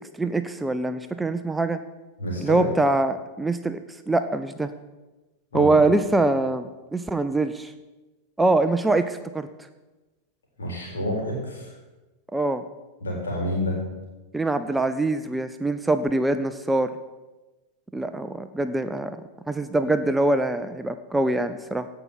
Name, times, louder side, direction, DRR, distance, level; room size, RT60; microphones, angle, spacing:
voice 1, 0.2-1.8 2.4-3.8 4.1-4.7 5.5-7.7 8.4-9.5 12.3-12.6 14.3-16.9 17.9-19.2 19.5-21.9, right 2 dB, 5° right, 10 dB, 0.5 m, -23 dB
voice 2, 2.2-2.7 5.5-5.7 10.6-11.7 13.0-13.8, equal, 70° left, -3 dB, 4.2 m, -28 dB
16.0 x 5.7 x 5.6 m, 1.1 s
figure-of-eight pair, 90°, 0 cm